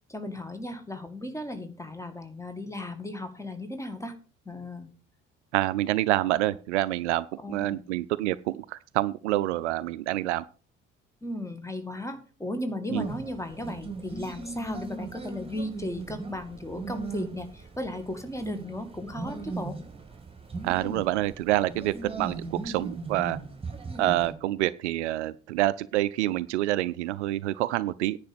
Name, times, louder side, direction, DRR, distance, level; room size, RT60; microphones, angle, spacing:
voice 1, 0.1-4.2 4.5-4.9 7.4-7.8 11.2-19.8, left 1 dB, 10° left, 8 dB, 2.1 m, -36 dB
voice 2, 5.5-10.4 12.9-13.1 20.6-23.4 24.0-28.2, right 15 dB, 65° right, 18 dB, 0.5 m, -27 dB
sound 1, 12.9-24.3, right 3 dB, 15° right, 2.5 m, -38 dB
10.0 x 5.1 x 8.2 m, 0.36 s
figure-of-eight pair, 55°, 37 cm